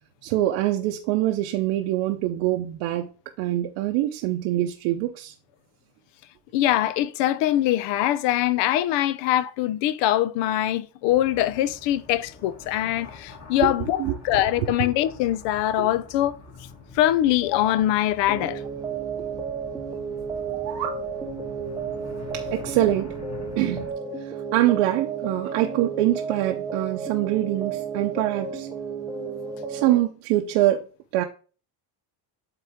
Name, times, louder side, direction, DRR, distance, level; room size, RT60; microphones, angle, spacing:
voice 1, 0.2-3.1 3.4-5.3 13.6-13.7 14.0-14.4 15.8-15.9 22.3-23.1 23.6-23.9 24.2-28.7 29.7-30.9 31.1-31.2, right 14 dB, 75° right, 0.8 m, -24 dB
voice 2, 6.5-16.4 16.9-18.6, left 13 dB, 60° left, 0.6 m, -23 dB
sound 1, 11.1-23.9, left 4 dB, 30° left, 2.0 m, -44 dB
sound 2, 18.3-30.0, right 6 dB, 10° right, 0.5 m, -32 dB
sound 3, 20.4-21.1, right 9 dB, 90° right, 1.0 m, -34 dB
8.0 x 3.8 x 3.6 m
cardioid pair, 135°, 49 cm